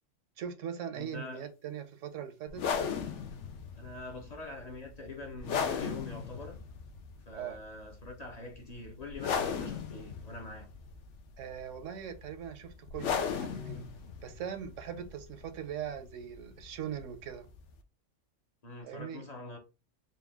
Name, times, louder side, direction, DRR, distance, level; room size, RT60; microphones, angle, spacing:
voice 1, 0.4-2.6 7.3-7.6 11.4-13.8 14.2-17.5 18.8-19.2, right 8 dB, 85° right, 1.1 m, -40 dB
voice 2, 0.9-1.5 3.7-6.6 7.3-10.7 18.6-19.6, left 2 dB, 40° left, 0.7 m, -44 dB
sound 1, 2.5-17.8, left 6 dB, 75° left, 0.9 m, -38 dB
4.1 x 2.3 x 3.4 m
omnidirectional pair, 1.3 m